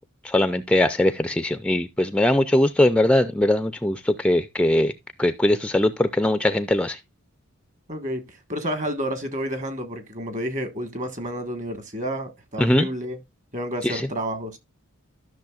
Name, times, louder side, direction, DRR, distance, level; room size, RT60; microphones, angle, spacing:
voice 1, 0.2-4.9 5.2-7.0 12.6-12.9 13.8-14.0, left 1 dB, 5° left, 0.4 m, -21 dB
voice 2, 7.9-13.2 13.5-14.6, equal, 35° right, 1.4 m, -30 dB
13.0 x 6.2 x 2.4 m
head